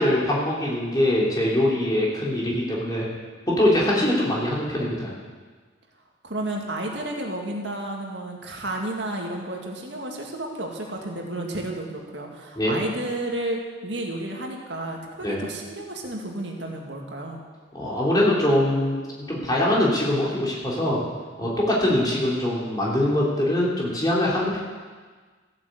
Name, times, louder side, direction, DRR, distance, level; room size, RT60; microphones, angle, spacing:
voice 1, 0.0-3.1 3.5-5.1 12.6-12.8 15.2-15.4 17.7-19.0 19.3-21.0 21.4-24.6, left 1 dB, 20° left, -5 dB, 3.2 m, -23 dB
voice 2, 6.2-17.4, right 1 dB, 70° right, 1 dB, 2.0 m, -32 dB
14.5 x 8.6 x 8.0 m, 1.5 s
head